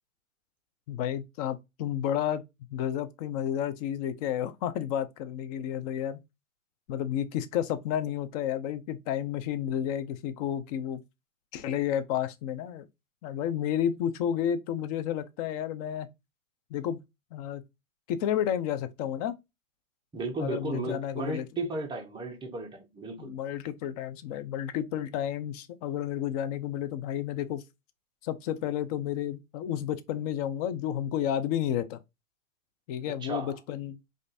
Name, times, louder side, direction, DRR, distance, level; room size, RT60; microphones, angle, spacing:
voice 1, 0.9-2.4 2.7-6.2 6.9-11.0 11.5-12.9 13.2-16.1 16.7-17.0 17.3-17.6 18.1-19.4 20.4-21.4 23.2-27.6 28.2-32.0 32.9-34.0, left 10 dB, 30° left, 0.5 m, -31 dB
voice 2, 20.1-23.3 33.1-33.5, right 2 dB, 10° right, 0.9 m, -35 dB
5.1 x 2.5 x 2.5 m
hypercardioid pair, 120°, 41 cm